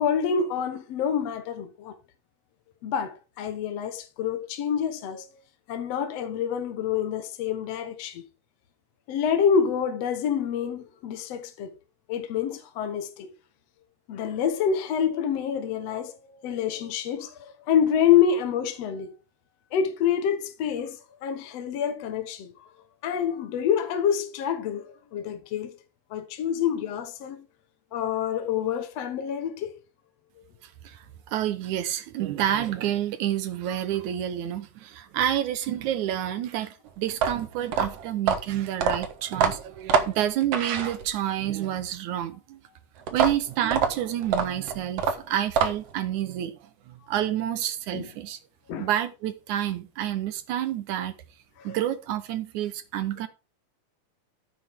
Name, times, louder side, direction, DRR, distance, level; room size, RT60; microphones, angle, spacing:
voice 1, 0.0-2.0 2.8-5.3 5.7-8.2 9.1-11.7 12.1-13.3 14.1-16.1 16.4-19.1 19.7-22.7 23.0-25.7 26.1-27.4 27.9-29.7 47.9-48.1 48.7-48.9 51.6-51.8, left 8 dB, 60° left, 2.1 m, -27 dB
voice 2, 30.6-42.6 43.1-48.4 48.8-51.2 51.6-53.3, right 11 dB, 75° right, 2.3 m, -29 dB
sound 1, 37.1-41.4 43.1-46.0, right 6 dB, 60° right, 2.2 m, -26 dB
14.5 x 7.8 x 3.6 m
omnidirectional pair, 3.6 m